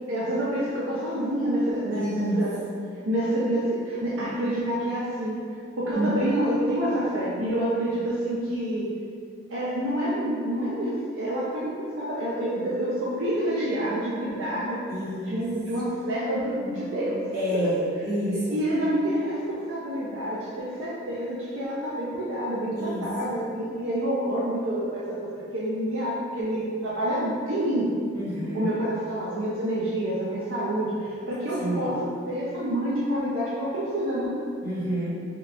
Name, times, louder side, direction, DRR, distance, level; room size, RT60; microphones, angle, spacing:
voice 1, 0.1-2.5 3.1-5.4 5.8-8.9 9.5-17.2 17.5-17.7 18.3-27.9 28.5-34.4, right 1 dB, 85° right, -7 dB, 0.5 m, -28 dB
voice 2, 1.9-2.4 5.9-6.1 14.9-15.4 17.3-18.6 22.8-23.0 28.1-28.7 31.6-31.9 34.6-35.1, equal, 55° right, -10 dB, 1.2 m, -28 dB
3.7 x 3.2 x 2.3 m, 2.3 s
head